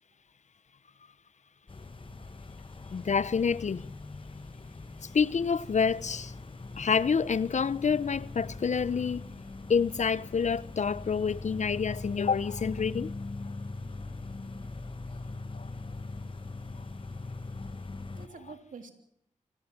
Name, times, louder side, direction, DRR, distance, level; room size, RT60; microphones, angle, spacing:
sound 1, 1.7-18.3, left 3 dB, 40° left, 1.6 m, -41 dB
voice 1, 2.9-3.9 5.1-6.3 6.8-9.2 9.7-13.1 15.5-15.7, left 6 dB, 60° left, 0.9 m, -28 dB
voice 2, 18.1-18.9, right 5 dB, 75° right, 3.5 m, -48 dB
26.0 x 18.0 x 7.7 m
cardioid pair, 40°, 14 cm